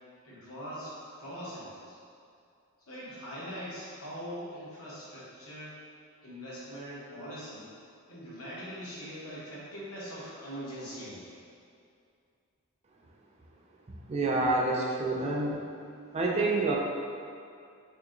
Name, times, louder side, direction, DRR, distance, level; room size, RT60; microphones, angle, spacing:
voice 1, 0.2-2.0 2.9-5.8 6.2-7.7 8.1-11.4, equal, 85° left, -8 dB, 1.1 m, -42 dB
voice 2, 14.1-15.7 16.1-16.8, right 2 dB, 30° right, -2 dB, 0.4 m, -27 dB
2.9 x 2.7 x 3.7 m, 2.4 s
head